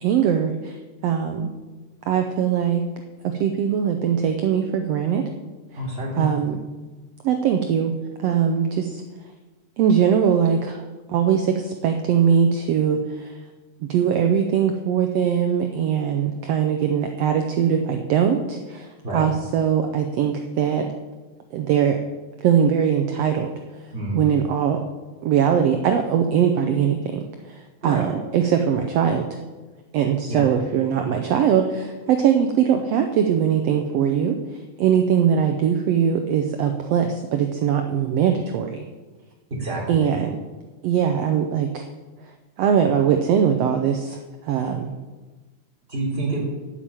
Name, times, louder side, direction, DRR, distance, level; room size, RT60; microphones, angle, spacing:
voice 1, 0.0-0.7 1.0-1.5 2.1-2.8 3.2-5.2 6.2-6.6 7.2-7.9 8.2-9.0 9.8-13.0 13.9-18.9 19.1-20.9 21.5-22.0 22.4-23.5 24.1-24.8 25.2-27.2 27.8-28.1 28.3-29.3 29.9-34.3 34.8-38.8 39.9-40.3 40.8-41.8 42.6-44.2 44.5-44.9, right 8 dB, 75° right, 5 dB, 1.5 m, -21 dB
voice 2, 5.7-6.3 19.0-19.2 23.9-24.2 27.8-28.1 30.3-30.5 39.5-40.1 45.9-46.4, right 2 dB, 15° right, -4 dB, 3.5 m, -27 dB
8.4 x 7.6 x 9.0 m, 1.2 s
omnidirectional pair, 3.7 m